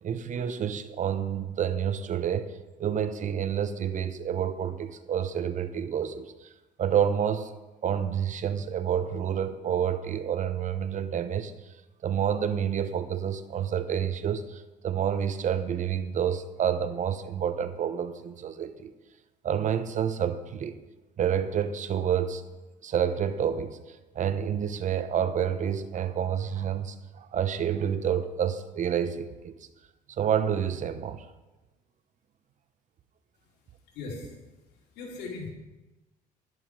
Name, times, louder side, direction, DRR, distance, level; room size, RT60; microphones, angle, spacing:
voice 1, 0.0-2.5 2.8-6.5 6.8-7.5 7.8-11.5 12.0-18.9 19.4-20.8 21.2-22.4 22.8-29.5 30.2-31.3, right 8 dB, 45° right, 12 dB, 0.9 m, -29 dB
voice 2, 33.4-35.5, left 3 dB, 85° left, -1 dB, 3.5 m, -41 dB
11.5 x 11.0 x 4.7 m, 1.1 s
cardioid pair, 110°, 17 cm